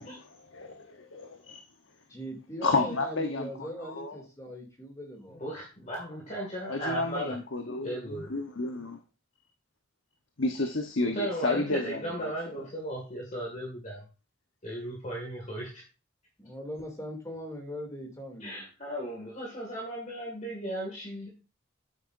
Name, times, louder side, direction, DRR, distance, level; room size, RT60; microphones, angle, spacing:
voice 1, 0.0-1.6 2.6-4.2 6.7-9.0 10.4-12.3, left 2 dB, 70° left, 1.0 m, -31 dB
voice 2, 2.1-5.5 16.4-18.7, equal, 15° left, 2.7 m, -40 dB
voice 3, 5.3-7.3 7.8-8.3 11.0-14.0 14.6-15.8 18.4-21.3, equal, 35° left, 2.2 m, -36 dB
10.0 x 8.4 x 2.6 m
head